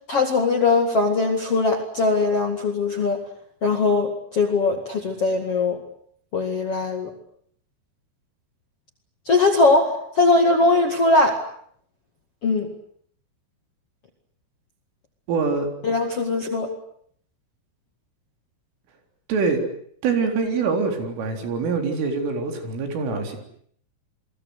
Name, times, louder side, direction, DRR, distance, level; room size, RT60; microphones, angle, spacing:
voice 1, 0.1-3.2 3.6-5.8 6.3-7.1 9.3-11.4 12.4-12.7 15.8-16.7, left 3 dB, 45° left, 4 dB, 1.9 m, -20 dB
voice 2, 15.3-15.7 19.3-19.6 20.0-23.4, right 4 dB, 75° right, 5 dB, 6.4 m, -24 dB
29.5 x 22.0 x 8.1 m, 0.65 s
omnidirectional pair, 5.9 m